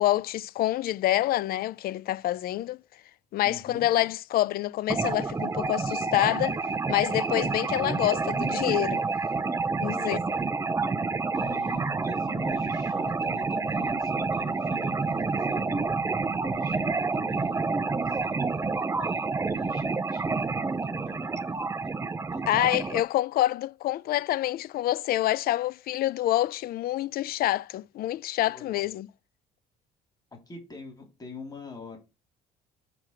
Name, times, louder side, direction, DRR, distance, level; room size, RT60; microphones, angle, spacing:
voice 1, 0.0-2.8 3.3-6.6 6.9-9.0 9.8-10.2 22.5-29.1, left 14 dB, 65° left, 0.5 m, -27 dB
voice 2, 3.4-3.9 9.9-10.5 11.3-15.8 16.5-21.9 22.3-22.4 28.5-28.9 30.5-32.0, left 3 dB, 25° left, 3.3 m, -45 dB
sound 1, 4.9-23.0, right 4 dB, 15° right, 0.6 m, -29 dB
6.1 x 5.8 x 6.5 m
cardioid pair, 110°, 17 cm